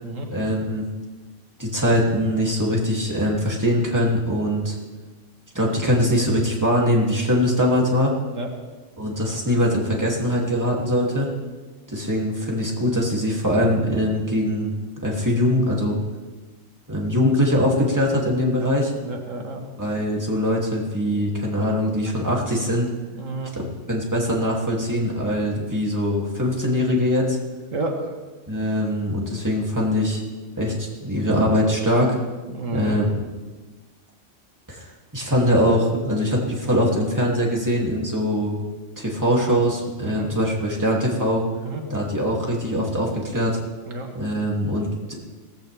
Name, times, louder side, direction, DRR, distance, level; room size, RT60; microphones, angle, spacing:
voice 1, 0.3-0.9 1.6-4.7 5.5-8.2 9.0-11.3 11.9-14.7 15.0-16.0 16.9-18.9 19.8-22.9 23.5-27.4 28.5-30.2 30.6-32.2 32.7-33.1 34.7-38.6 39.0-41.4 41.9-43.6 44.1-45.2, equal, 15° right, -3 dB, 2.7 m, -22 dB
voice 2, 19.0-19.7 23.1-23.6 27.7-28.2 32.5-33.0 40.0-40.3 41.6-41.8 43.9-44.1, right 2 dB, 90° right, 2 dB, 2.1 m, -30 dB
17.5 x 16.0 x 3.5 m, 1.3 s
omnidirectional pair, 1.3 m